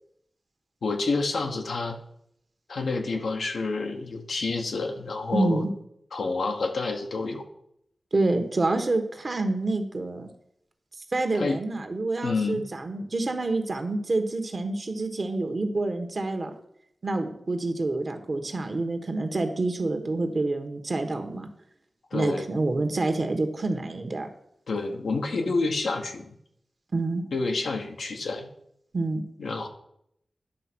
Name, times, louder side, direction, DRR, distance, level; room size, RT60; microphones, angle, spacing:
voice 1, 0.8-2.0 2.7-5.7 6.1-7.4 11.3-11.6 12.2-12.6 22.1-22.5 24.7-26.3 27.3-28.5 29.4-29.7, left 3 dB, 85° left, 3 dB, 1.0 m, -28 dB
voice 2, 5.3-5.7 8.1-10.3 11.1-16.5 17.0-21.5 22.1-24.3 26.9-27.2 28.9-29.2, right 2 dB, 55° right, 6 dB, 1.2 m, -27 dB
10.0 x 3.3 x 6.1 m, 0.73 s
cardioid pair, 55°, 0 cm